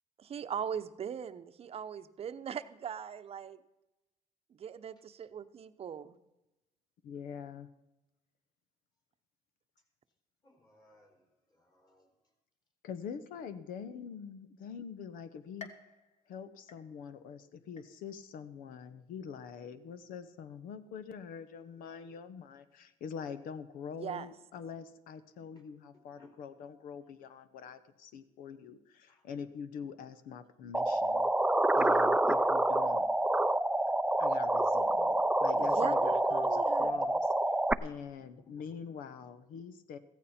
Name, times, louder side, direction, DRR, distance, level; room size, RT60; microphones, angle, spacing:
voice 1, 0.2-3.6 4.6-6.1 24.0-24.3 35.6-37.0, right 8 dB, 45° right, 11 dB, 0.8 m, -40 dB
voice 2, 7.0-7.7 12.8-15.7 16.3-31.3 31.7-33.1 34.2-37.3 37.8-40.0, left 7 dB, 75° left, 12 dB, 1.0 m, -44 dB
voice 3, 10.4-11.2 11.5-12.1 25.9-26.3 29.1-29.2 38.4-38.7, left 2 dB, 30° left, 2 dB, 4.4 m, -62 dB
sound 1, 15.6-17.3 17.8-18.3 18.8-18.9 19.9-20.0, left 5 dB, 50° left, 1.5 m, -53 dB
sound 2, 30.7-37.7, right 1 dB, 5° right, 0.5 m, -27 dB
15.5 x 14.5 x 4.3 m, 0.96 s
cardioid pair, 90°, 14 cm